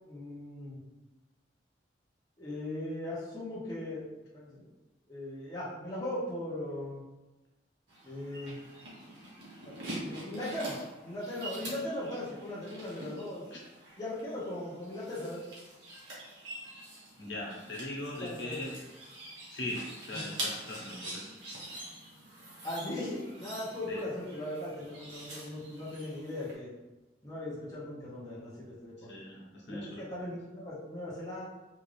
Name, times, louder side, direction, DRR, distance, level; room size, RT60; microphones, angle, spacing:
voice 1, 0.1-0.8 2.4-4.1 4.3-4.7 5.1-7.0 8.0-8.6 9.6-10.7 11.0-13.4 14.0-15.4 18.2-18.6 20.1-20.2 22.6-26.7 27.2-29.1 29.7-31.5, left 1 dB, 20° left, -9 dB, 0.9 m, -38 dB
sound 1, 7.9-26.5, right 1 dB, 80° right, 1.3 m, -45 dB
voice 2, 17.2-18.8 19.5-21.2 23.9-24.0 29.0-30.2, left 1 dB, 70° left, -4 dB, 1.1 m, -40 dB
3.7 x 2.6 x 3.2 m, 1.1 s
head